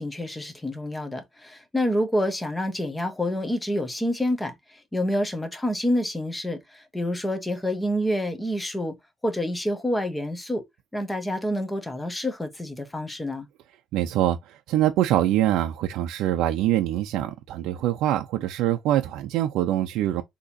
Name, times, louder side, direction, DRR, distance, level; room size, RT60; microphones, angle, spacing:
voice 1, 0.0-4.6 4.9-8.9 9.2-10.6 10.9-13.5, left 1 dB, 10° left, 1.0 m, -27 dB
voice 2, 13.9-20.2, right 13 dB, 80° right, 0.5 m, -24 dB
6.3 x 2.9 x 2.7 m
cardioid pair, 155°, 0 cm